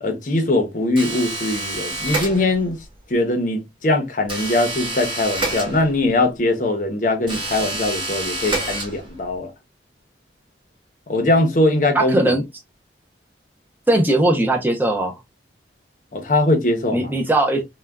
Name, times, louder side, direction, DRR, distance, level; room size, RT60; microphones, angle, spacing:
voice 1, 0.0-2.8 3.1-9.5 11.1-12.2 16.1-17.1, left 2 dB, 45° left, 0.6 m, -21 dB
sound 1, 1.0-2.8 4.3-6.2 7.2-9.3, right 2 dB, 25° right, 0.9 m, -28 dB
voice 2, 11.9-12.4 13.9-15.1 16.9-17.6, right 1 dB, 10° right, 0.5 m, -19 dB
3.4 x 2.1 x 2.2 m
head